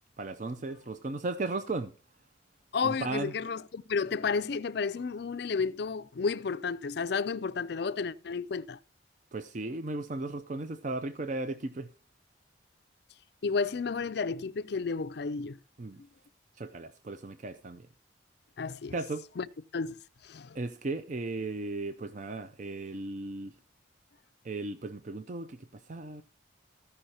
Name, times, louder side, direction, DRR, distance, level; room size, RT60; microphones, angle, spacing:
voice 1, 0.2-1.9 2.8-3.3 9.3-11.9 15.8-16.0 16.5-17.9 18.9-19.3 20.5-23.5 24.4-26.2, right 2 dB, 40° right, 0.5 m, -36 dB
voice 2, 2.7-8.8 13.4-15.6 18.6-18.9 19.4-19.5 19.7-20.6, left 5 dB, 55° left, 0.4 m, -32 dB
14.5 x 5.5 x 4.2 m
head